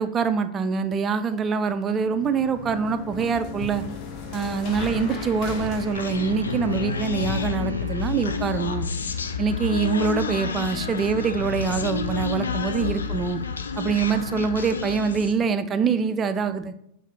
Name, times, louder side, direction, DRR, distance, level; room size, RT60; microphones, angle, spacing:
voice 1, 0.0-3.8 4.3-8.9 9.4-13.4 13.8-16.7, right 5 dB, 25° right, 11 dB, 0.3 m, -25 dB
sound 1, 1.9-7.4, left 5 dB, 40° left, 0.7 m, -36 dB
Wind instrument woodwind instrument, 4.3-9.3, left 1 dB, 85° right, 0.4 m, -40 dB
Human voice, 6.0-15.4, left 5 dB, 70° left, 0.4 m, -29 dB
6.3 x 2.6 x 3.2 m, 0.75 s
figure-of-eight pair, 90°, 0 cm